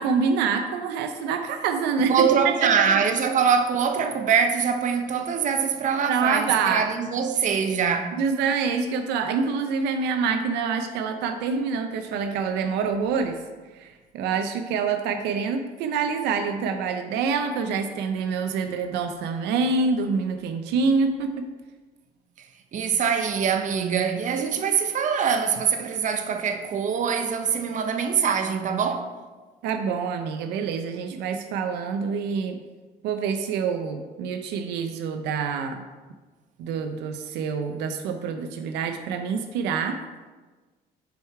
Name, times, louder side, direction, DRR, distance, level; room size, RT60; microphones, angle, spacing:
voice 1, 0.0-2.1 2.6-2.8 6.1-6.8 8.2-13.4 13.7-21.5 29.6-32.6 33.0-35.8 36.6-40.0, right 5 dB, 90° right, 0.6 m, -26 dB
voice 2, 2.0-8.2 22.7-29.1, right 6 dB, 50° right, 0.8 m, -23 dB
6.7 x 4.7 x 4.6 m
cardioid pair, 110°, 17 cm